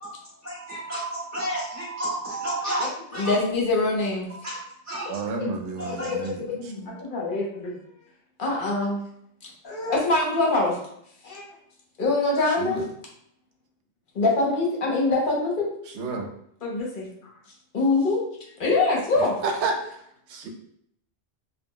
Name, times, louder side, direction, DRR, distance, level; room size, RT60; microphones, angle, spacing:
voice 1, 0.4-2.9 3.1-3.4 4.4-4.6 4.9-5.1 5.8-6.1, right 1 dB, 25° right, -8 dB, 0.4 m, -31 dB
voice 2, 2.8-4.3 5.4-5.5 5.9-7.8 8.4-9.0 9.6-10.8 11.2-11.4 12.0-12.8 14.1-15.7 16.6-17.1 17.7-18.2 18.6-19.4, left 3 dB, 55° left, -2 dB, 0.8 m, -24 dB
voice 3, 5.1-6.7 12.5-12.9 15.9-16.3 19.2-20.0 20.3-20.5, right 3 dB, 80° right, 3 dB, 0.9 m, -31 dB
2.2 x 2.0 x 3.6 m, 0.71 s
omnidirectional pair, 1.1 m